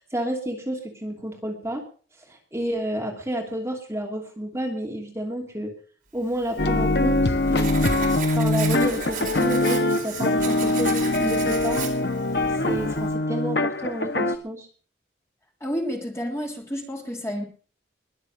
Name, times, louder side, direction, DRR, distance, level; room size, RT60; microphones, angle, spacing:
voice 1, 0.0-1.8 2.3-5.7 6.1-7.7 8.3-11.8 12.6-14.7, right 1 dB, 15° right, 0 dB, 2.8 m, -30 dB
Writing, 6.4-13.1, right 6 dB, 50° right, 4.1 m, -36 dB
sound 1, 6.6-14.4, left 2 dB, 60° left, 1.2 m, -23 dB
voice 2, 15.6-17.4, equal, 15° left, 1 dB, 3.3 m, -30 dB
21.5 x 7.3 x 6.5 m, 0.42 s
head